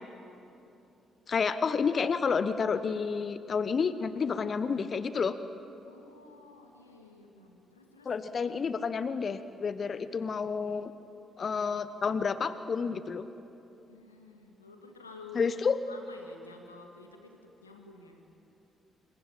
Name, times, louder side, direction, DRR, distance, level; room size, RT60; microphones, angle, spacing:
voice 1, 1.3-5.4 8.0-10.9 11.4-13.2 15.3-15.8, left 5 dB, 40° left, 13 dB, 1.1 m, -30 dB
voice 2, 5.8-8.4 13.9-15.4 15.9-18.2, left 3 dB, 85° left, 3 dB, 2.2 m, -52 dB
27.5 x 23.5 x 8.8 m, 2.8 s
figure-of-eight pair, 40°, 0 cm